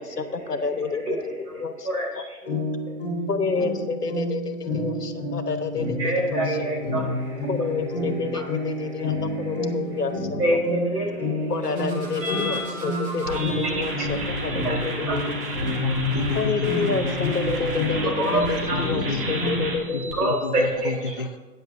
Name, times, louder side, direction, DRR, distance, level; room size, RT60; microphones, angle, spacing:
voice 1, 0.0-2.2 3.3-6.7 7.5-10.6 11.5-15.4 16.3-20.7, left 4 dB, 80° left, 9 dB, 1.0 m, -29 dB
voice 2, 0.9-2.7 6.0-7.5 9.1-9.5 10.4-11.5 12.2-12.9 13.3-13.4 14.0-14.1 14.6-14.7 15.1-15.2 18.2-18.4 18.7-18.8 20.1-21.1, right 1 dB, 75° right, -2 dB, 3.6 m, -27 dB
sound 1, 2.4-19.9, left 1 dB, 20° left, 3.5 m, -30 dB
sound 2, 6.4-10.1 11.5-13.8, right 1 dB, 20° right, 1.4 m, -40 dB
sound 3, 12.2-12.6 13.3-20.8, right 1 dB, 35° right, 1.8 m, -32 dB
voice 3, 15.7-17.9 18.7-19.6 19.9-21.4, left 4 dB, 40° left, 8 dB, 0.4 m, -30 dB
13.0 x 9.4 x 2.6 m, 1.2 s
figure-of-eight pair, 135°, 47 cm